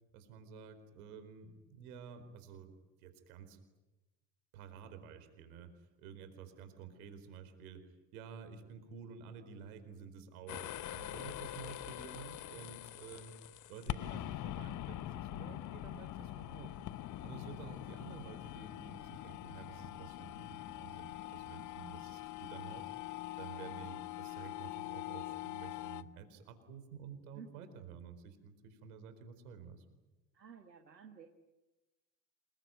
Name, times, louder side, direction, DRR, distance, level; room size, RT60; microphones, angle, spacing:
voice 1, 0.1-2.7 3.0-3.6 4.5-5.7 6.0-7.8 8.1-13.4 13.7-16.7 17.2-22.8 23.4-30.0, right 6 dB, 60° right, 9 dB, 4.6 m, -51 dB
sound 1, 10.5-26.0, left 14 dB, 35° left, 1.1 m, -44 dB
voice 2, 27.3-27.8 30.3-31.3, right 6 dB, 85° right, 5 dB, 1.8 m, -54 dB
28.0 x 21.5 x 9.4 m, 1.1 s
figure-of-eight pair, 65°, 49 cm